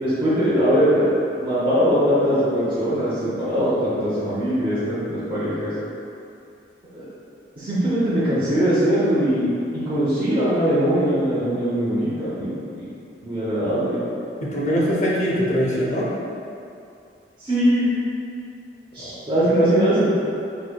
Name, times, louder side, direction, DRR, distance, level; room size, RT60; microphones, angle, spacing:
voice 1, 0.0-1.1 1.4-5.7 6.9-7.1 7.6-12.8 13.2-14.0 17.4-18.0 18.9-20.1, equal, 25° right, -13 dB, 0.7 m, -21 dB
voice 2, 14.4-16.1 19.0-19.6, equal, 40° left, -5 dB, 0.5 m, -23 dB
4.7 x 2.7 x 2.2 m, 2.6 s
head